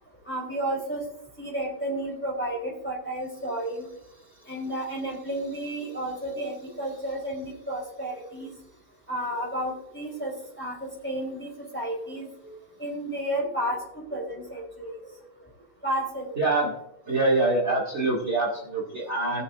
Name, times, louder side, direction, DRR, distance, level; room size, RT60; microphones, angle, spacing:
voice 1, 0.3-1.0 1.4-3.9 4.5-8.5 9.1-15.2 15.8-16.4 18.9-19.0, right 1 dB, 5° left, -3 dB, 3.1 m, -32 dB
voice 2, 16.4-16.7 17.1-19.4, right 2 dB, 30° right, -3 dB, 2.4 m, -25 dB
19.5 x 7.0 x 2.5 m, 0.79 s
omnidirectional pair, 2.4 m